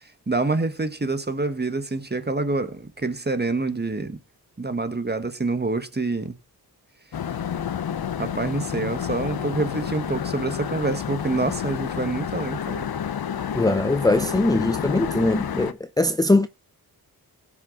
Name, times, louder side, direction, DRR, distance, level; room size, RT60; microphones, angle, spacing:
voice 1, 0.3-4.2 4.6-6.3 8.2-12.9, right 3 dB, 25° right, 1.5 m, -26 dB
sound 1, 7.1-15.7, left 8 dB, 70° left, 0.8 m, -30 dB
voice 2, 13.5-16.5, left 2 dB, 10° left, 0.6 m, -21 dB
16.5 x 6.2 x 3.8 m
cardioid pair, 70°, 38 cm